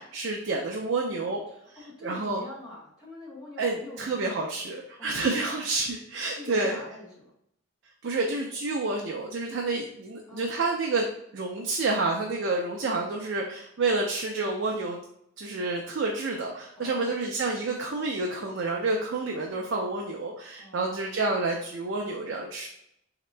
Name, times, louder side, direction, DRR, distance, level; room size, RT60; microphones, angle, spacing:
voice 1, 0.0-1.4 2.0-2.4 3.6-6.8 8.0-11.1 11.3-15.0 15.4-22.7, right 3 dB, 55° right, 0 dB, 0.5 m, -29 dB
voice 2, 1.5-4.4 5.0-5.4 6.3-7.3 10.3-10.5 16.8-17.2 20.6-21.1, left 2 dB, 20° left, -6 dB, 1.5 m, -45 dB
4.1 x 2.8 x 3.2 m, 0.75 s
head